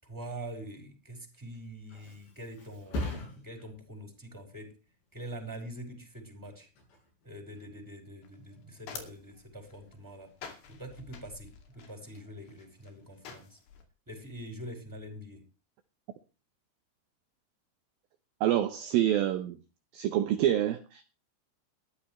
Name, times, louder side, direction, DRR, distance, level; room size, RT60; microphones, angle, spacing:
voice 1, 0.0-4.8 5.1-6.7 7.2-10.3 10.7-13.6 14.1-15.4, right 1 dB, 5° right, 3 dB, 5.2 m, -44 dB
Thump thud, 1.3-8.8 9.2-9.6, left 1 dB, 90° left, 10.5 m, -44 dB
sound 1, 8.2-13.8, left 7 dB, 70° left, 4.6 m, -49 dB
voice 2, 18.4-19.6 19.9-21.0, right 12 dB, 70° right, 9 dB, 2.4 m, -27 dB
20.0 x 13.5 x 3.2 m, 0.32 s
omnidirectional pair, 4.9 m